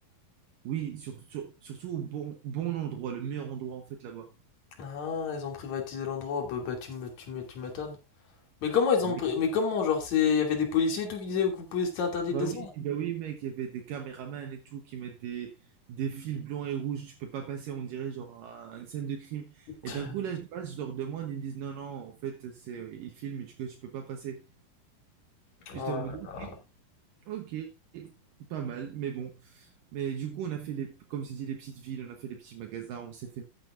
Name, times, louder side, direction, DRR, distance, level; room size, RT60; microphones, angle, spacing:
voice 1, 0.6-4.3 9.0-9.2 12.3-15.6 15.9-24.4 25.7-26.6 27.3-28.1 28.5-33.4, right 9 dB, 70° right, 2.7 m, -37 dB
voice 2, 4.8-8.0 8.6-12.7 19.9-20.1 25.7-26.0 26.4-26.5, left 6 dB, 55° left, 3.8 m, -29 dB
14.0 x 8.8 x 2.6 m
omnidirectional pair, 4.2 m